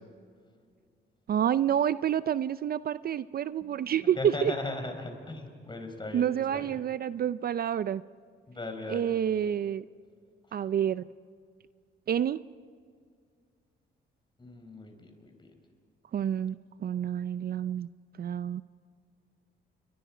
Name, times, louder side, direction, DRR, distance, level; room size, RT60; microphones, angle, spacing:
voice 1, 1.3-4.5 6.1-8.0 8.9-9.8 10.5-11.0 12.1-12.4 16.1-16.6 16.8-17.9 18.2-18.6, right 9 dB, 50° right, 15 dB, 0.5 m, -28 dB
voice 2, 4.0-6.8 8.5-9.2 14.4-15.6, left 2 dB, 25° left, 5 dB, 4.8 m, -38 dB
29.0 x 24.0 x 5.0 m, 2.1 s
cardioid pair, 90°, 20 cm